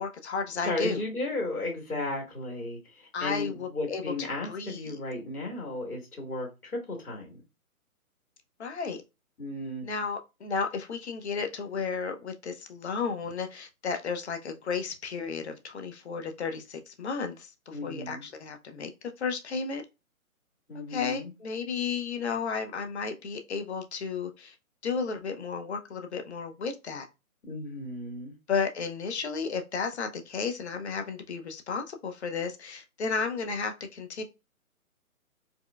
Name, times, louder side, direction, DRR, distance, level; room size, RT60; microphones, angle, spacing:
voice 1, 0.0-1.0 3.1-4.0 4.4-5.0 8.6-9.0 9.8-18.9 19.2-19.8 20.9-24.6 24.8-27.1 28.5-34.2, left 5 dB, 50° left, 0.7 m, -33 dB
voice 2, 0.7-7.3 9.4-9.9 17.7-18.2 20.7-21.3 27.4-28.3, left 2 dB, 80° left, 1.8 m, -34 dB
4.2 x 2.1 x 2.3 m
hypercardioid pair, 150°, 43 cm